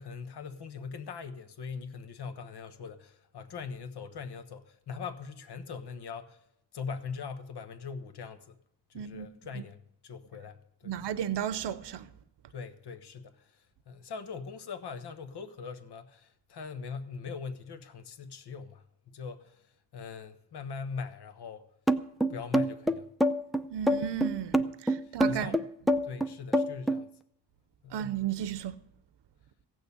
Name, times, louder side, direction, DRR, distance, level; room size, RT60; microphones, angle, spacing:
voice 1, 0.0-6.4 6.7-8.6 8.9-9.8 10.0-10.9 12.5-21.7 22.3-23.1 25.0-25.7 26.0-27.1 27.8-28.0, left 5 dB, 65° left, 1.2 m, -41 dB
voice 2, 8.9-9.3 10.8-12.1 23.7-25.5 27.9-28.7, right 9 dB, 75° right, 0.8 m, -34 dB
sound 1, 21.9-27.0, right 1 dB, ahead, 0.4 m, -26 dB
15.5 x 6.4 x 8.4 m
wide cardioid pair, 110°, 42 cm